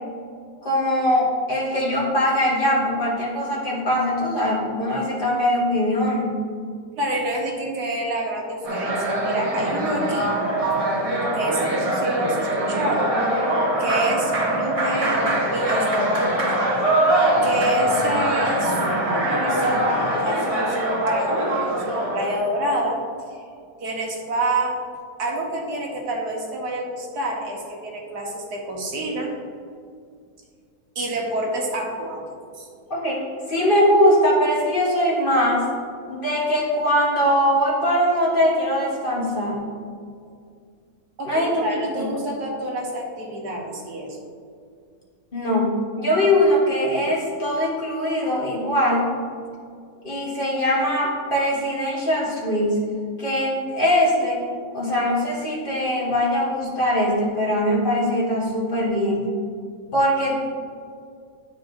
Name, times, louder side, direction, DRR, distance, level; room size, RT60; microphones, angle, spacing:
voice 1, 0.6-6.4 32.9-33.2 33.5-35.7 36.1-39.7 41.2-42.1 45.3-49.1 50.0-52.8 53.2-54.4 54.7-59.4 59.9-60.4, equal, 35° left, -5 dB, 1.2 m, -21 dB
voice 2, 7.0-10.4 11.3-13.5 13.8-15.2 15.5-16.5 17.4-18.8 19.3-23.0 23.8-24.8 25.2-29.3 30.9-32.2 32.6-32.7 41.2-44.2, right 1 dB, 80° right, -1 dB, 1.6 m, -28 dB
sound 1, 8.6-22.4, right 1 dB, 25° right, 0.9 m, -22 dB
10.0 x 4.7 x 2.6 m, 2.2 s
omnidirectional pair, 1.7 m